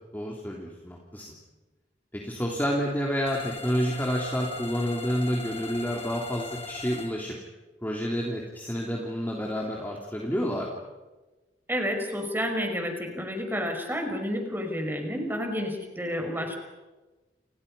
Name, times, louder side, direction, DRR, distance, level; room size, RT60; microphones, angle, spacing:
voice 1, 0.1-1.3 2.1-7.4 7.8-10.8, equal, 10° left, -2 dB, 3.4 m, -29 dB
sound 1, 3.3-7.1, left 3 dB, 35° left, 5.5 m, -40 dB
voice 2, 11.7-16.6, equal, 10° right, 4 dB, 5.7 m, -30 dB
29.5 x 29.5 x 5.6 m, 1.2 s
head